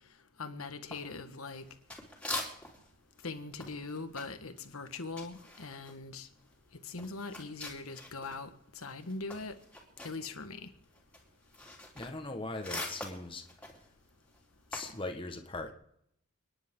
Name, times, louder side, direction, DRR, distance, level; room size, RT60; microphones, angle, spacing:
voice 1, 0.4-1.6 3.2-6.3 6.8-8.5 8.7-9.5 10.0-10.7, left 3 dB, 90° left, 1.5 m, -41 dB
sound 1, 0.9-2.9 3.2-8.5 8.8-15.0, left 2 dB, 5° left, 2.9 m, -44 dB
voice 2, 11.9-13.4 14.7-15.7, left 2 dB, 25° left, 1.4 m, -40 dB
30.0 x 10.5 x 3.8 m
head